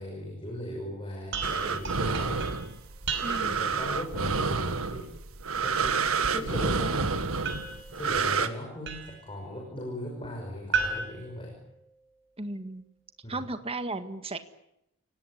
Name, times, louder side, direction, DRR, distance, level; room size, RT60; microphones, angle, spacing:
voice 1, 0.0-2.5 3.4-5.1 5.6-7.3 7.9-11.6 13.2-13.5, left 1 dB, 25° left, 1 dB, 5.9 m, -38 dB
sound 1, 1.3-3.7 7.4-9.3 10.7-12.2, right 5 dB, 60° right, 5.5 m, -35 dB
sound 2, 1.4-8.5, right 5 dB, 85° right, 1.7 m, -29 dB
voice 2, 3.2-3.6 6.3-7.2 12.4-12.8 13.3-14.4, right 2 dB, 30° right, 9 dB, 1.7 m, -36 dB
29.5 x 18.0 x 10.0 m, 0.82 s
head